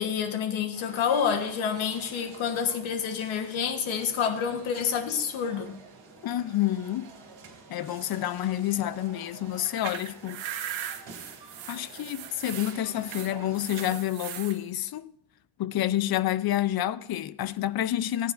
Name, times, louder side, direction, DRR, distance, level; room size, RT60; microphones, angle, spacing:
voice 1, 0.0-5.8, left 7 dB, 85° left, 1.3 m, -28 dB
sound 1, 0.7-14.0, right 4 dB, 70° right, 2.9 m, -49 dB
voice 2, 6.2-7.1 7.7-10.4 11.7-15.1 15.6-18.3, left 13 dB, 50° left, 0.6 m, -29 dB
sound 2, 9.5-14.6, right 10 dB, 85° right, 1.2 m, -39 dB
16.5 x 9.2 x 2.6 m
cardioid pair, 120°, 46 cm